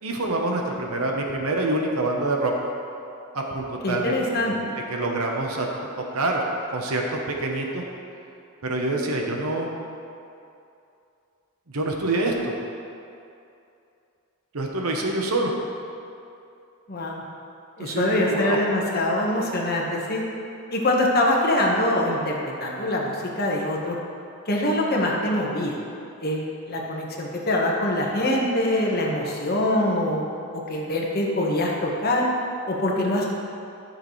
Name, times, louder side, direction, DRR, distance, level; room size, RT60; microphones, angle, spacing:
voice 1, 0.0-2.5 3.3-4.6 4.9-6.4 6.7-7.8 8.6-9.7 11.7-12.5 14.5-15.5 17.8-18.6, right 2 dB, 80° right, 1 dB, 1.0 m, -26 dB
voice 2, 3.8-4.5 16.9-17.2 17.8-20.2 20.7-24.0 24.5-25.7 26.2-30.2 30.5-32.3 32.6-33.3, left 1 dB, 45° left, -2 dB, 1.3 m, -24 dB
13.5 x 6.6 x 3.2 m, 2.6 s
head